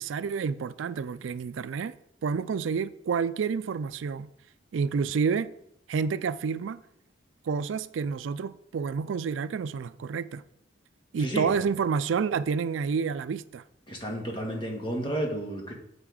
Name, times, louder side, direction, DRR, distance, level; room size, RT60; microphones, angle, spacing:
voice 1, 0.0-1.9 2.2-4.3 4.7-5.5 5.9-6.8 7.5-10.4 11.1-13.6, right 5 dB, 80° right, 0.4 m, -29 dB
voice 2, 11.2-11.7 13.9-15.7, right 1 dB, 25° left, 1.7 m, -32 dB
7.9 x 6.0 x 4.9 m
head